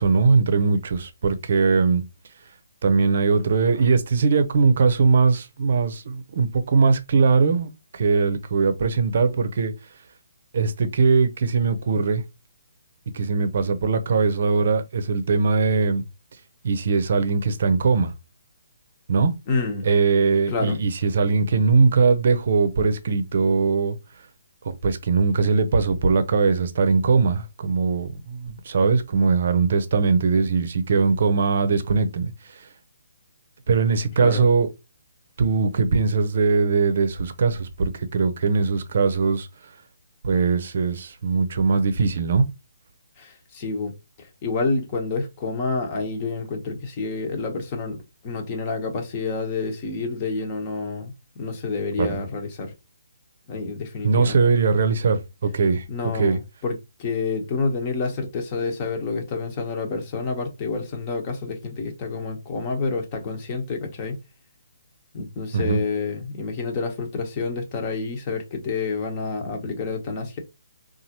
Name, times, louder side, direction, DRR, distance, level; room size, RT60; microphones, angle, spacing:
voice 1, 0.0-2.0 2.8-9.7 10.5-12.2 13.1-16.0 16.6-18.1 19.1-19.3 19.8-24.0 24.6-32.3 33.7-34.7 35.4-39.5 40.2-42.4 52.0-52.2 54.0-55.8 56.1-56.4 65.5-65.8, right 4 dB, 55° right, 0.6 m, -20 dB
voice 2, 19.5-19.9 20.5-20.8 34.2-34.5 43.2-43.9 44.2-51.1 51.4-52.7 53.5-54.4 55.9-56.7 57.0-64.2 65.1-70.4, left 4 dB, 30° left, 1.0 m, -28 dB
4.1 x 2.5 x 2.9 m
figure-of-eight pair, 140°, 0 cm